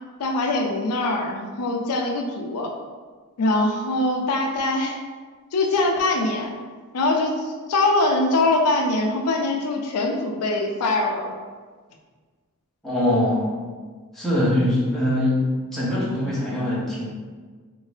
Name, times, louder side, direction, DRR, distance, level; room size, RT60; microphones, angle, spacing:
voice 1, 0.2-2.7 3.4-5.0 5.5-6.6 6.9-11.4, left 2 dB, 85° left, 2 dB, 0.4 m, -23 dB
voice 2, 12.8-13.5 14.1-15.4 15.7-17.1, left 1 dB, ahead, -9 dB, 0.8 m, -22 dB
2.8 x 2.6 x 3.2 m, 1.5 s
head